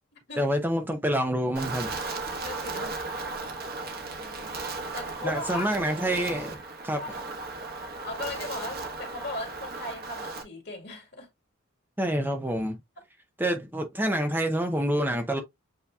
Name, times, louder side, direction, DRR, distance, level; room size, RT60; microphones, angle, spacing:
voice 1, 0.4-1.9 5.2-6.6 6.8-7.0 12.0-12.8 13.4-15.4, right 1 dB, 10° right, 0.5 m, -27 dB
Wind, 1.6-10.4, right 3 dB, 45° right, 1.0 m, -36 dB
voice 2, 2.4-3.0 3.9-4.6 4.9-5.9 7.0-7.3 8.0-11.3, left 2 dB, 50° left, 2.1 m, -38 dB
8.1 x 2.8 x 2.3 m
head